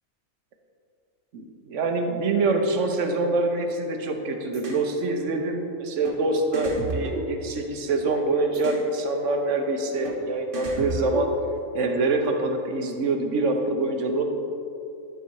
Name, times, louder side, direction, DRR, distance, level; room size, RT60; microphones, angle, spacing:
voice 1, 1.3-11.3 11.7-14.2, right 2 dB, 70° right, 4 dB, 1.1 m, -25 dB
sound 1, 4.5-4.9 6.0-6.2 6.5-7.9 8.5-8.9 10.0-10.2 10.5-11.6, right 3 dB, 45° right, 1.1 m, -33 dB
11.5 x 4.1 x 4.6 m, 2.6 s
omnidirectional pair, 1.4 m